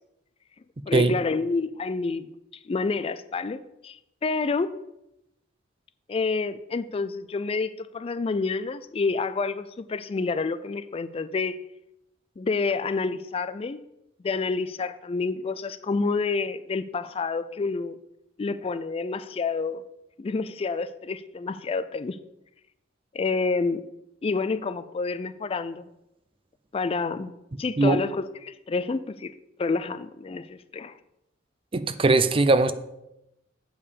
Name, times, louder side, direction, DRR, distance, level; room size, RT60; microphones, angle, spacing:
voice 1, 0.9-2.3 2.7-4.8 6.1-11.6 12.4-13.8 14.2-18.0 18.4-19.8 20.2-22.2 23.1-23.8 24.2-25.9 26.7-29.3 29.6-30.9, left 4 dB, 30° left, 13 dB, 0.3 m, -28 dB
voice 2, 31.7-32.7, right 3 dB, 30° right, 12 dB, 0.5 m, -20 dB
8.6 x 5.4 x 6.7 m, 0.87 s
head